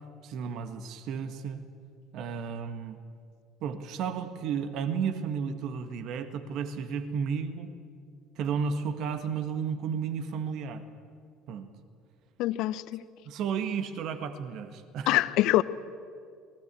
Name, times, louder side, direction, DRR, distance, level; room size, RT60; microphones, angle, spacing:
voice 1, 0.2-1.6 2.1-3.0 3.6-7.7 8.4-10.8 11.5-11.7 13.3-15.2, right 6 dB, 55° right, 9 dB, 1.7 m, -33 dB
voice 2, 12.4-13.0 15.1-15.6, left 16 dB, 60° left, 15 dB, 0.8 m, -24 dB
27.0 x 20.0 x 8.5 m, 2.2 s
figure-of-eight pair, 60°, 0 cm